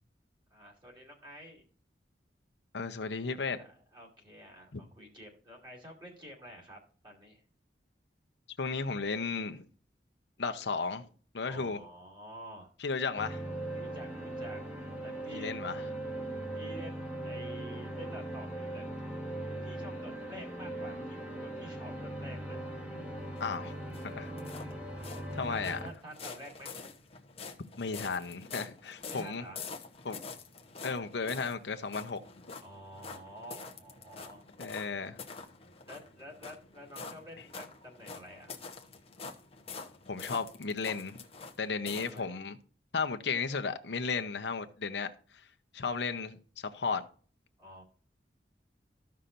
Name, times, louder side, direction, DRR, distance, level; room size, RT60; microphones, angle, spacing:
voice 1, 0.5-1.6 3.6-7.4 11.5-12.7 13.7-14.6 15.0-15.6 16.5-18.8 19.6-22.8 25.5-26.7 29.1-29.6 32.6-34.5 35.9-38.6 41.8-42.4 47.6-47.8, equal, 25° right, 2.6 m, -49 dB
voice 2, 2.7-3.6 4.7-4.8 8.6-9.6 10.4-11.1 11.3-11.8 12.8-13.4 15.3-15.8 23.4-23.7 24.0-24.3 25.3-25.8 27.8-29.4 30.0-30.2 30.8-32.2 34.6-35.2 40.1-41.2 41.6-42.6 42.9-45.1 45.7-46.4 46.6-47.0, left 4 dB, 70° left, 0.8 m, -34 dB
sound 1, 13.1-25.9, right 1 dB, 5° right, 1.5 m, -39 dB
sound 2, 23.4-42.2, left 4 dB, 35° left, 0.9 m, -47 dB
14.5 x 5.6 x 2.6 m
head